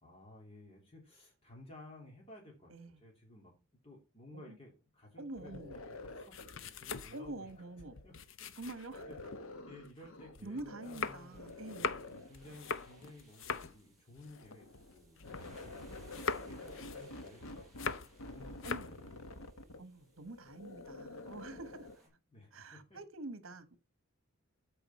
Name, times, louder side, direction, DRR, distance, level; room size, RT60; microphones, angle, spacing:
voice 1, 0.0-2.7 3.0-3.5 3.8-7.5 8.0-8.1 8.4-9.2 9.7-11.5 12.3-14.7 14.9-19.3 22.3-23.0, left 1 dB, 30° left, 2.9 m, -56 dB
voice 2, 2.7-3.0 4.3-4.6 5.2-5.8 7.1-8.0 8.5-9.1 10.4-12.1 16.9-17.1 18.6-18.9 19.8-21.9 22.5-23.8, right 2 dB, 70° right, 1.2 m, -46 dB
sound 1, 5.3-9.4 9.8-15.7 15.9-18.3 18.5-19.0, left 5 dB, 60° left, 0.6 m, -42 dB
sound 2, 5.4-8.2 8.9-11.1 11.3-13.1 14.2-22.0, left 2 dB, 80° left, 1.0 m, -49 dB
sound 3, 11.1-22.1, right 1 dB, ahead, 4.8 m, -64 dB
13.0 x 4.9 x 4.2 m
head